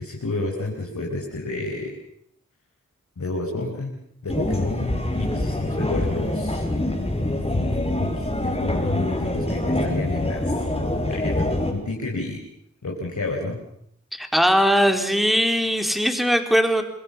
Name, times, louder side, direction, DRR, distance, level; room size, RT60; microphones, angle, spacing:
voice 1, 0.0-1.9 3.2-4.0 4.2-6.6 7.5-10.6 11.0-12.4 12.8-13.6, left 2 dB, 75° left, -2 dB, 5.4 m, -30 dB
sound 1, 4.3-11.7, left 1 dB, 20° left, 6.0 m, -25 dB
voice 2, 14.1-16.8, equal, ahead, 6 dB, 4.2 m, -20 dB
28.5 x 21.5 x 7.3 m, 0.72 s
cardioid pair, 45°, 29 cm